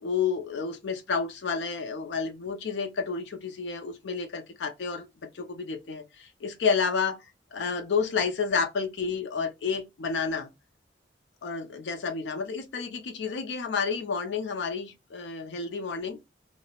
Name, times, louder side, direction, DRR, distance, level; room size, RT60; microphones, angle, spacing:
voice 1, 0.0-5.1 5.3-7.2 7.5-10.5 11.4-16.2, left 5 dB, 70° left, 0.4 m, -30 dB
3.1 x 2.0 x 2.9 m
head